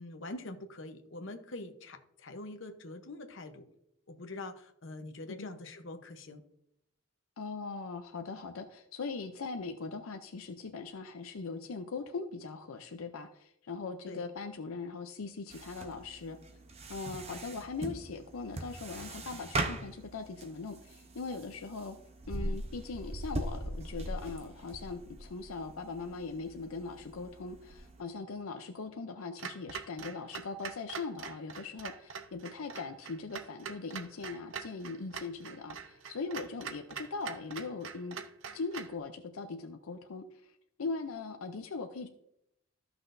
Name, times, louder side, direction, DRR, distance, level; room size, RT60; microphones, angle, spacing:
voice 1, 0.0-3.7 4.1-6.4 14.1-14.2, left 2 dB, 65° left, 7 dB, 0.9 m, -44 dB
voice 2, 7.4-16.4 16.9-22.0 22.3-38.2 38.5-40.5 40.8-42.1, left 4 dB, 90° left, 7 dB, 0.6 m, -40 dB
sound 1, 15.5-28.0, right 1 dB, 30° right, 0.7 m, -41 dB
Clock, 29.4-39.0, right 6 dB, 70° right, 0.6 m, -44 dB
13.5 x 6.0 x 2.6 m, 0.78 s
head